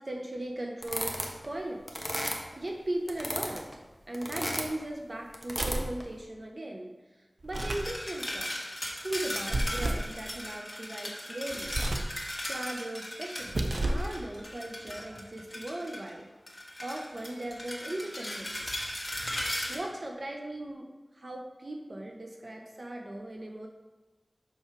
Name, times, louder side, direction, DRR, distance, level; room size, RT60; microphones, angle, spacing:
voice 1, 0.0-2.0 2.3-3.7 4.1-6.9 7.4-8.6 9.0-11.7 12.1-12.2 12.5-16.3 16.8-18.7 19.7-23.7, right 1 dB, 60° right, 1 dB, 0.9 m, -38 dB
sound 1, 0.8-1.5 1.9-2.7 3.1-3.7 4.1-4.8 5.3-6.0, equal, ahead, 1.1 m, -34 dB
sound 2, 5.5-6.0 7.4-7.9 9.5-10.1 11.6-12.2 13.4-14.1, right 1 dB, 85° right, 0.7 m, -31 dB
sound 3, 7.5-16.1 16.5-19.8, left 1 dB, 25° left, 1.8 m, -38 dB
6.3 x 5.8 x 4.7 m, 1.2 s
wide cardioid pair, 50°, 0 cm